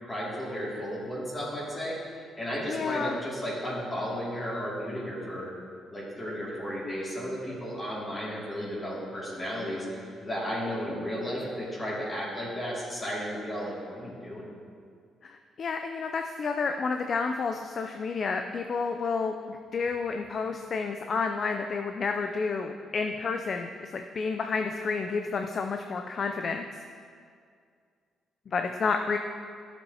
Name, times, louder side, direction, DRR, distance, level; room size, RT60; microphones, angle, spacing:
voice 1, 0.0-5.5 5.9-14.4, equal, 25° left, -6 dB, 2.3 m, -34 dB
voice 2, 2.7-3.2 15.2-26.6 28.5-29.2, left 4 dB, 50° left, 5 dB, 0.4 m, -30 dB
11.5 x 7.2 x 2.8 m, 2.2 s
cardioid pair, 90°, 0 cm